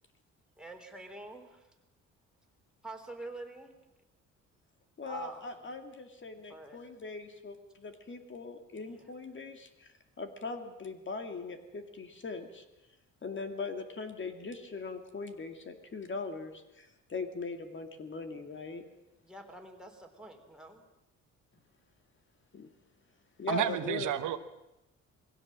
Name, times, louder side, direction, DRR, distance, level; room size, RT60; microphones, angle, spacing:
voice 1, 0.6-1.6 2.8-3.7 5.1-5.5 6.5-6.8 8.7-8.9 19.2-20.8, right 2 dB, 5° right, 2 dB, 3.7 m, -46 dB
voice 2, 5.0-12.6 13.2-18.8 22.5-22.7 23.4-24.2, left 3 dB, 40° left, 6 dB, 2.4 m, -40 dB
voice 3, 23.5-24.4, right 11 dB, 80° right, 9 dB, 1.3 m, -31 dB
22.0 x 16.5 x 7.6 m, 0.94 s
cardioid pair, 90°, 30 cm